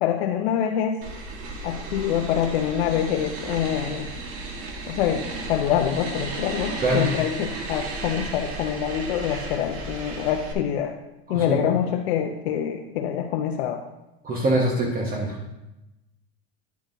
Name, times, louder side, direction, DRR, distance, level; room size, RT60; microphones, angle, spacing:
voice 1, 0.0-1.0 1.6-4.1 4.9-5.2 5.5-10.9 11.3-13.8, left 9 dB, 85° left, 3 dB, 0.7 m, -25 dB
sound 1, 1.0-10.5, right 2 dB, 45° right, 1.5 m, -34 dB
voice 2, 11.3-11.6 14.2-15.4, right 1 dB, 30° right, 0 dB, 1.2 m, -24 dB
9.5 x 8.5 x 2.6 m, 0.96 s
supercardioid pair, 120°, 31 cm